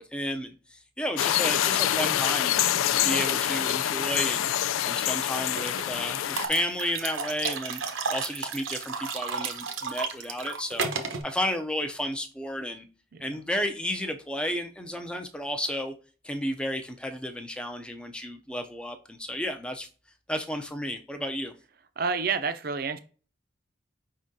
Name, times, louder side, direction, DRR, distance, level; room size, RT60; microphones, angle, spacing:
voice 1, 0.0-4.5 4.8-7.8 8.1-10.9 11.2-12.9 13.2-15.9 16.2-19.9 20.3-21.5, left 1 dB, 5° left, 0.4 m, -32 dB
sound 1, 1.2-6.5, left 11 dB, 90° left, 0.3 m, -26 dB
sound 2, 5.6-5.8 6.4-11.2, right 5 dB, 85° right, 0.8 m, -32 dB
voice 2, 22.0-23.0, right 5 dB, 50° right, 0.5 m, -29 dB
5.4 x 3.6 x 2.6 m
head